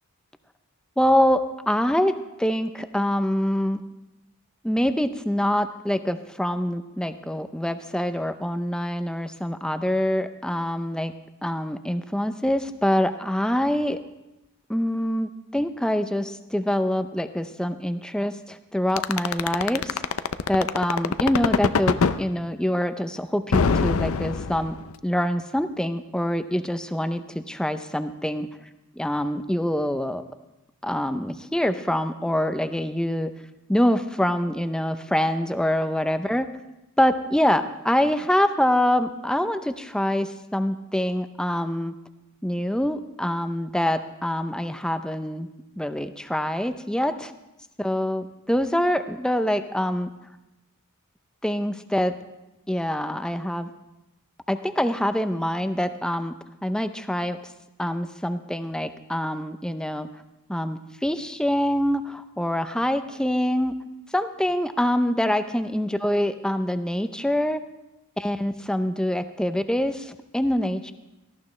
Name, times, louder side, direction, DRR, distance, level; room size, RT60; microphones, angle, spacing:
voice 1, 1.0-3.8 4.6-11.1 11.4-14.0 14.7-20.0 20.5-24.8 25.0-28.5 29.0-30.2 30.8-33.3 33.7-36.5 37.0-41.9 42.4-45.5 45.8-47.3 47.8-50.1 51.4-52.2 52.7-53.7 54.5-56.3 56.6-57.4 57.8-60.1 60.5-63.8 64.1-67.6 68.2-70.9, equal, 5° left, 9 dB, 0.5 m, -25 dB
sound 1, 19.0-22.2 23.5-24.9, left 5 dB, 65° left, 0.5 m, -22 dB
18.0 x 14.0 x 3.2 m, 0.94 s
head